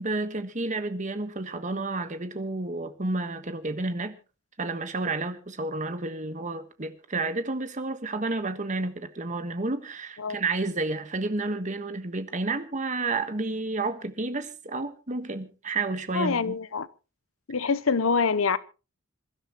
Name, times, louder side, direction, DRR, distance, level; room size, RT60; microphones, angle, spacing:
voice 1, 0.0-4.1 4.6-16.5, right 3 dB, 35° right, 1.4 m, -31 dB
voice 2, 16.1-16.9 17.5-18.6, left 5 dB, 85° left, 0.8 m, -25 dB
27.0 x 12.0 x 3.0 m
head